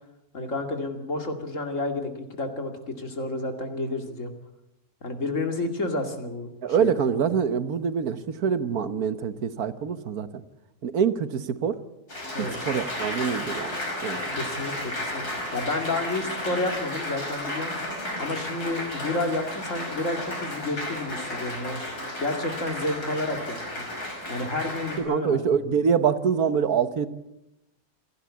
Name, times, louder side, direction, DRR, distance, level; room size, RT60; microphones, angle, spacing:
voice 1, 0.3-4.3 5.0-6.5 6.8-6.9 12.3-12.5 14.1-17.7 18.2-21.8 22.2-23.9 24.3-25.5, left 2 dB, 55° left, 5 dB, 2.7 m, -30 dB
voice 2, 6.6-10.4 10.8-11.8 12.7-14.4 25.0-27.1, right 7 dB, 75° right, 12 dB, 1.5 m, -25 dB
Applause, 12.1-25.0, left 1 dB, 85° left, 6.0 m, -33 dB
27.0 x 11.5 x 8.5 m, 0.88 s
omnidirectional pair, 1.6 m